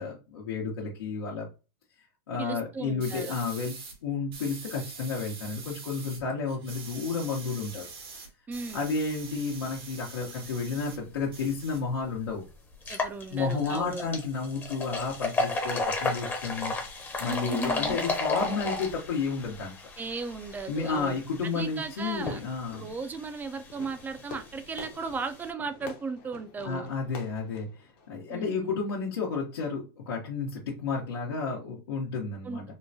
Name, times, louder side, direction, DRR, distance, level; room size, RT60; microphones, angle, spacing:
voice 1, 0.0-1.5 2.3-3.7 4.0-7.8 8.7-12.4 13.3-16.7 17.2-19.9 20.7-23.0 26.6-32.6, left 4 dB, 80° left, 1.0 m, -32 dB
voice 2, 2.4-3.3 8.5-8.8 12.9-14.1 17.3-18.0 20.0-21.2 21.4-22.4 22.7-26.9 28.3-28.8 32.4-32.7, right 4 dB, 15° right, 0.4 m, -36 dB
sound 1, 3.0-4.0 4.3-6.2 6.5-11.0 11.3-12.3, right 4 dB, 80° right, 1.4 m, -44 dB
sound 2, 11.5-11.6 12.0-12.1 12.7-25.5, left 3 dB, 15° left, 0.8 m, -34 dB
Fireworks, 23.7-28.7, left 3 dB, 45° left, 0.8 m, -48 dB
3.7 x 2.2 x 2.7 m
hypercardioid pair, 125°, 12 cm